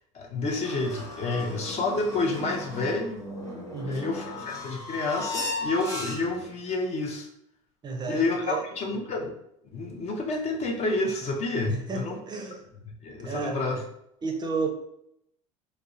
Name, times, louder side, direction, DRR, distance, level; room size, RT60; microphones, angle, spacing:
voice 1, 0.1-3.2 3.9-7.3 8.1-9.3 9.7-12.2 13.0-13.8, left 3 dB, 40° left, 2 dB, 0.5 m, -29 dB
sound 1, 0.6-6.5, left 1 dB, 20° left, 1.0 m, -36 dB
voice 2, 3.7-4.1 7.8-8.6 11.7-12.6 13.2-13.6 14.2-14.7, right 4 dB, 25° right, 2 dB, 0.5 m, -32 dB
2.6 x 2.0 x 2.5 m, 0.76 s
supercardioid pair, 95°, 17 cm